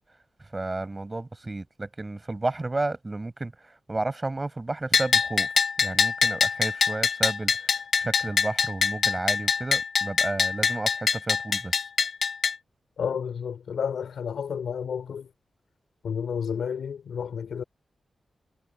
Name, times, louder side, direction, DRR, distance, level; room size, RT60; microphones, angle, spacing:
voice 1, 0.5-5.5 5.8-7.7 8.0-11.7, right 2 dB, 25° right, 5.1 m, -32 dB
Bell, 4.9-12.6, left 5 dB, 65° left, 1.1 m, -24 dB
voice 2, 13.0-15.3 16.0-17.6, left 7 dB, 85° left, 4.5 m, -31 dB
cardioid pair, 80°, 0 cm